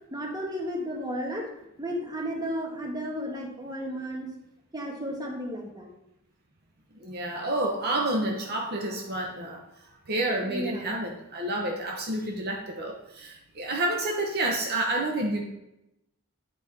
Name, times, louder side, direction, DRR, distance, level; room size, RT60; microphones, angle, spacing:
voice 1, 0.1-1.4 1.8-4.3 4.7-5.9 10.4-10.9, equal, 20° right, 0 dB, 1.3 m, -33 dB
voice 2, 7.0-9.6 10.1-15.4, right 1 dB, 45° right, 0 dB, 0.9 m, -29 dB
8.7 x 4.3 x 4.6 m, 0.88 s
head